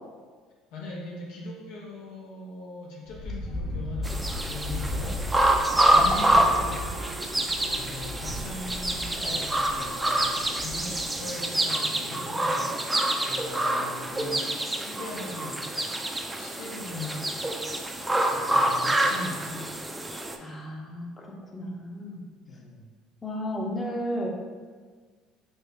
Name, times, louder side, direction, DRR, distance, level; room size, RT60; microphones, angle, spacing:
voice 1, 0.7-5.3 5.8-6.9 7.7-12.8 13.2-15.9 16.4-17.3 18.3-19.7 22.5-22.9, left 2 dB, 70° left, -2 dB, 0.5 m, -40 dB
Wind, 3.1-11.2, left 2 dB, 45° left, 0.9 m, -36 dB
sound 1, 4.0-20.4, right 1 dB, 15° right, 0.4 m, -26 dB
sound 2, 5.7-13.1, right 3 dB, 75° right, 0.7 m, -43 dB
voice 2, 20.4-22.2 23.2-24.3, equal, 25° left, -1 dB, 0.7 m, -33 dB
3.1 x 2.8 x 3.3 m, 1.5 s
hypercardioid pair, 65°, 0 cm